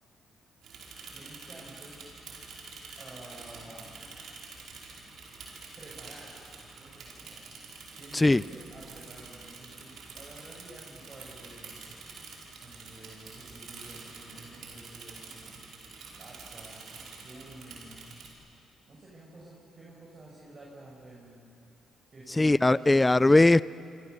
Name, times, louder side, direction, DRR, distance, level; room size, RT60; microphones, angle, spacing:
Bicycle / Mechanisms, 0.6-18.3, right 4 dB, 65° right, 5.0 m, -47 dB
voice 1, 1.1-2.0 3.0-4.2 5.8-7.5 8.0-11.8 12.6-15.6 16.1-18.1 18.9-21.4 22.1-23.2, right 2 dB, 40° right, -4 dB, 6.6 m, -50 dB
voice 2, 22.4-23.6, left 2 dB, 20° left, 19 dB, 0.5 m, -20 dB
26.5 x 26.5 x 6.8 m, 2.5 s
hypercardioid pair, 50°, 0 cm